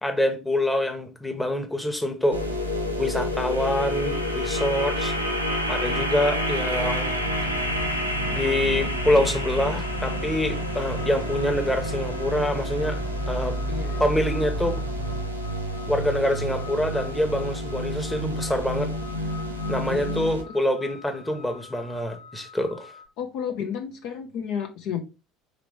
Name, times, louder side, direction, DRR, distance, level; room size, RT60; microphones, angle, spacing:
voice 1, 0.0-2.4 3.0-5.1 5.7-7.2 8.3-13.0 13.3-13.6 14.0-14.8 15.9-18.9 19.7-22.9, left 1 dB, 10° left, 0.9 m, -26 dB
sound 1, 2.3-20.4, equal, 90° right, 0.6 m, -29 dB
sound 2, 7.2-15.4, right 4 dB, 35° right, 0.5 m, -40 dB
sound 3, 7.5-23.1, left 6 dB, 80° left, 1.2 m, -47 dB
voice 2, 13.7-14.1 19.9-20.1 23.2-25.0, left 8 dB, 55° left, 0.6 m, -31 dB
4.9 x 3.3 x 3.2 m
figure-of-eight pair, 60°, 0 cm